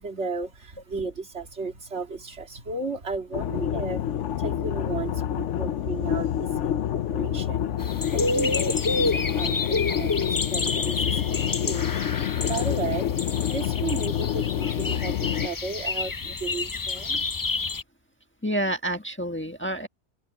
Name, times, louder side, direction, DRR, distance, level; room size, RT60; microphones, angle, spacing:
voice 1, 0.0-17.3, right 4 dB, 70° right, 2.5 m, -35 dB
sound 1, 3.3-15.5, left 10 dB, 85° left, 1.0 m, -27 dB
sound 2, 7.8-17.8, left 3 dB, 35° left, 0.3 m, -29 dB
voice 2, 18.4-19.9, right 1 dB, 10° left, 1.4 m, -28 dB
open air
omnidirectional pair, 1.2 m